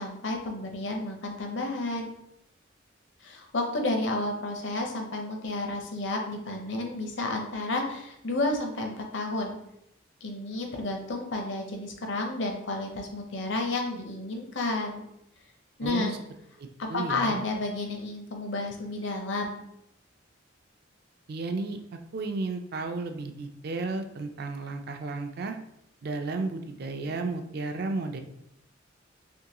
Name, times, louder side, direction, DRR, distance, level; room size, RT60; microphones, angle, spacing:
voice 1, 0.0-2.1 3.2-9.6 10.2-15.0 15.8-16.1 16.8-19.6, left 2 dB, 65° left, 2 dB, 0.7 m, -31 dB
voice 2, 15.8-16.2 16.6-17.4 21.3-21.8 22.1-25.6 26.0-28.2, right 3 dB, 55° right, 6 dB, 0.4 m, -33 dB
3.5 x 2.9 x 2.9 m, 0.77 s
head